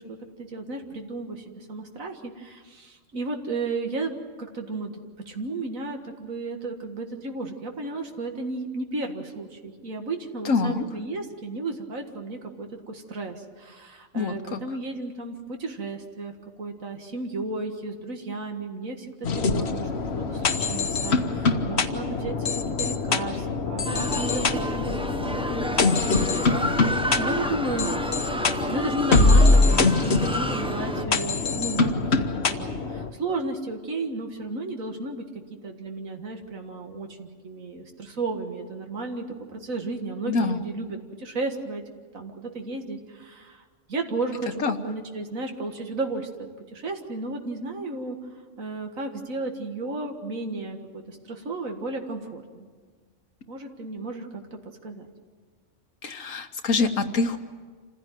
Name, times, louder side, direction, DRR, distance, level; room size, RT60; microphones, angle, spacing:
voice 1, 0.0-4.1 4.4-5.0 5.3-19.9 20.2-27.9 28.7-35.2 35.6-41.8 42.1-48.2 48.6-52.7 53.5-55.1, right 2 dB, 85° right, 4 dB, 2.1 m, -34 dB
voice 2, 10.4-10.8 14.1-14.6 40.3-40.6 44.6-44.8 56.0-57.4, left 4 dB, 80° left, 6 dB, 1.7 m, -25 dB
sound 1, 19.2-33.1, left 3 dB, 55° left, 1.3 m, -24 dB
sound 2, 23.8-31.0, equal, 5° right, 0.7 m, -30 dB
27.0 x 15.5 x 9.1 m, 1.5 s
omnidirectional pair, 1.4 m